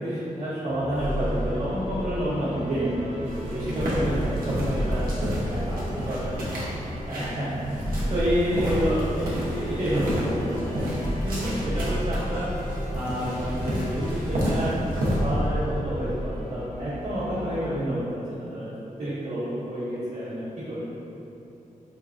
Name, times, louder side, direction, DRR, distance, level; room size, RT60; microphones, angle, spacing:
voice 1, 0.0-5.1 5.5-5.6 6.1-6.3 7.1-12.5 12.9-14.7 15.1-20.9, equal, 65° right, -16 dB, 1.2 m, -29 dB
sound 1, 0.7-16.0, left 2 dB, 70° left, 0.8 m, -43 dB
sound 2, 0.9-17.7, equal, 45° left, 1.2 m, -33 dB
sound 3, 3.2-15.2, equal, 90° right, 0.9 m, -31 dB
voice 2, 5.5-6.9 17.3-17.7, equal, 15° right, -11 dB, 0.5 m, -42 dB
4.5 x 2.5 x 2.4 m, 2.9 s
wide cardioid pair, 150°, 14 cm